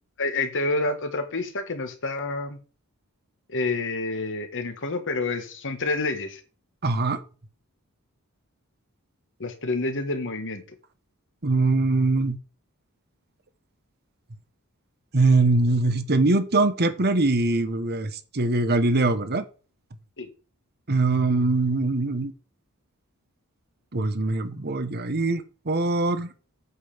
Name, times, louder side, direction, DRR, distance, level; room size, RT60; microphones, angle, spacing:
voice 1, 0.2-2.6 3.5-6.4 9.4-10.6 20.2-20.3, left 3 dB, 60° left, 7 dB, 1.9 m, -28 dB
voice 2, 6.8-7.2 11.4-12.4 15.1-19.4 20.9-22.3 23.9-26.3, right 3 dB, 45° right, 11 dB, 1.2 m, -22 dB
8.4 x 7.7 x 5.1 m, 0.36 s
head